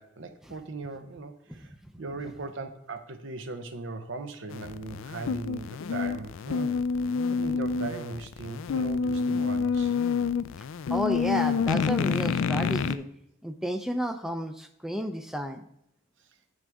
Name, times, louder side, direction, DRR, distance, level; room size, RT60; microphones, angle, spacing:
voice 1, 0.0-6.8 7.3-9.9 16.2-16.3, right 3 dB, 65° right, 8 dB, 0.7 m, -39 dB
sound 1, 4.5-13.0, left 5 dB, 70° left, 0.4 m, -28 dB
voice 2, 10.9-13.1 13.4-15.7, equal, ahead, 7 dB, 0.4 m, -31 dB
8.9 x 6.2 x 3.5 m, 0.78 s
head